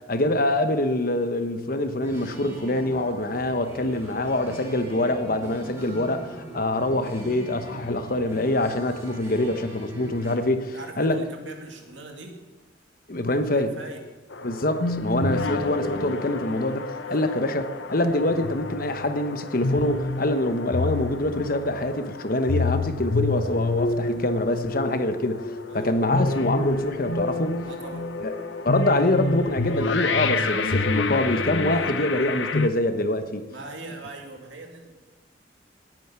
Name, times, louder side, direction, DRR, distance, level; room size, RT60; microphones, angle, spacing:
voice 1, 0.1-11.2 13.1-13.7 14.4-25.4 25.7-27.6 28.2-28.3 28.6-33.4, left 1 dB, 50° left, 9 dB, 1.1 m, -25 dB
sound 1, 2.0-10.4, right 1 dB, 15° right, 3.5 m, -42 dB
voice 2, 10.7-12.4 13.5-14.0 15.4-15.5 17.0-17.4 25.7-26.0 27.7-28.1 33.5-35.0, right 2 dB, 85° right, 2 dB, 2.4 m, -41 dB
sound 2, 14.3-32.7, left 3 dB, 85° left, 0.9 m, -28 dB
18.0 x 9.3 x 5.8 m, 1.2 s
head